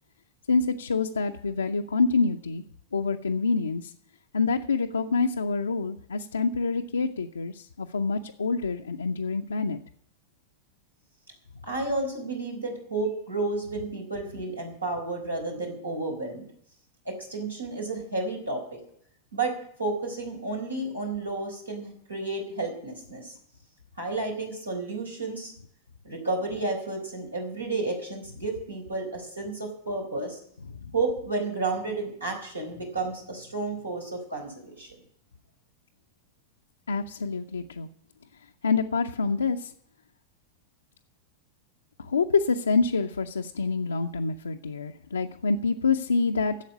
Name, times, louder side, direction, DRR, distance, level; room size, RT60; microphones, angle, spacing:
voice 1, 0.5-2.6 2.9-3.9 4.3-9.8 36.9-37.9 38.6-39.7 42.0-46.5, left 4 dB, 75° left, 3 dB, 0.6 m, -26 dB
voice 2, 11.6-16.4 17.0-18.8 19.3-23.3 24.0-25.5 26.0-30.4 30.9-35.0, right 3 dB, 80° right, 1 dB, 4.3 m, -31 dB
11.5 x 7.9 x 9.6 m, 0.66 s
figure-of-eight pair, 90°, 0 cm